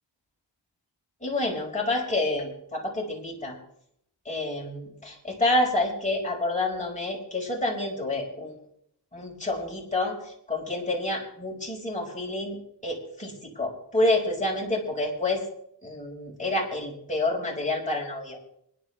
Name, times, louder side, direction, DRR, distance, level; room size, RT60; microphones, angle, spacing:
voice 1, 1.2-3.6 4.3-8.5 9.1-12.6 12.8-15.4 15.8-18.4, left 2 dB, 15° left, -3 dB, 5.8 m, -28 dB
26.5 x 11.0 x 3.5 m, 0.74 s
wide cardioid pair, 65°, 44 cm